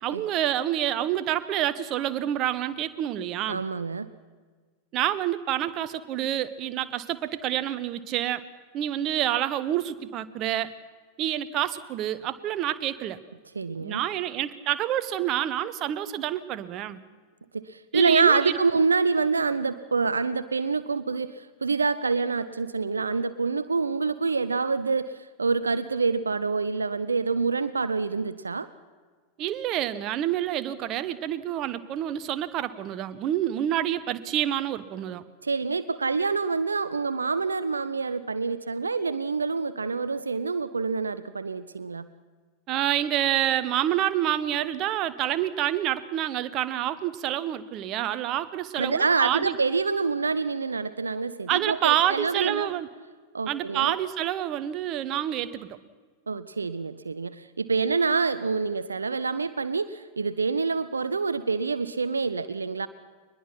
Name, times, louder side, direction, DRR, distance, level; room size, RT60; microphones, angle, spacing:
voice 1, 0.0-3.6 4.9-8.4 8.7-10.7 11.2-13.2 13.8-17.0 17.9-18.6 29.4-35.2 42.7-49.5 51.5-52.9 53.5-55.8, right 12 dB, 35° right, 13 dB, 0.9 m, -28 dB
voice 2, 3.5-4.1 13.6-14.0 17.5-28.7 35.4-42.1 48.8-52.7 53.3-53.9 56.3-62.9, right 4 dB, 75° right, 13 dB, 0.6 m, -26 dB
22.5 x 21.0 x 5.9 m, 1.5 s
figure-of-eight pair, 90°, 0 cm